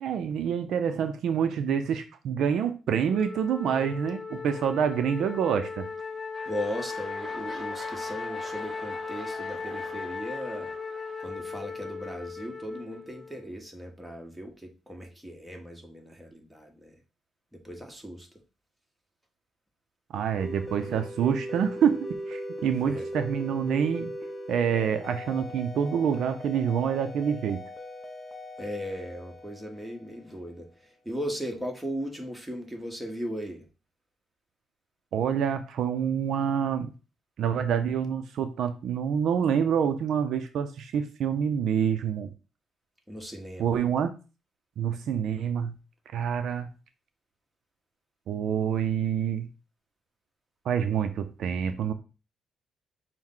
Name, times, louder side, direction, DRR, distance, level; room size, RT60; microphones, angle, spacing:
voice 1, 0.0-5.9 20.1-24.2 24.5-27.6 35.1-36.9 37.4-42.3 43.6-44.2 44.8-45.7 46.1-46.7 48.3-49.5 50.7-51.9, right 8 dB, 75° right, 9 dB, 0.4 m, -27 dB
Wind instrument woodwind instrument, 3.1-13.5, left 5 dB, 30° left, 0.3 m, -37 dB
sound 1, 5.9-12.2 12.9-13.0, right 3 dB, 35° right, 0.8 m, -47 dB
voice 2, 6.5-10.7 11.2-16.9 17.6-18.3 22.8-23.1 28.6-30.7 31.0-33.6 43.1-43.7, equal, 5° right, 2 dB, 1.2 m, -37 dB
sound 2, 20.1-30.5, equal, 15° left, 0.7 m, -39 dB
6.2 x 2.1 x 3.7 m, 0.32 s
cardioid pair, 90°, 0 cm